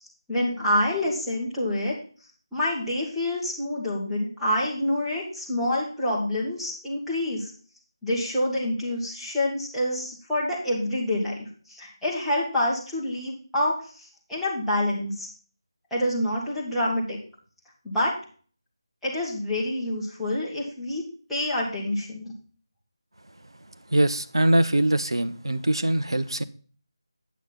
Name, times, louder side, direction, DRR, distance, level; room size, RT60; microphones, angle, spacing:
voice 1, 0.3-1.9 2.5-7.5 8.0-15.3 15.9-17.2 17.8-18.1 19.0-21.0 21.3-22.3, left 1 dB, ahead, 2.0 m, -27 dB
voice 2, 23.9-26.4, right 1 dB, 75° right, 0.8 m, -22 dB
9.3 x 7.1 x 3.9 m
figure-of-eight pair, 160°, 3 cm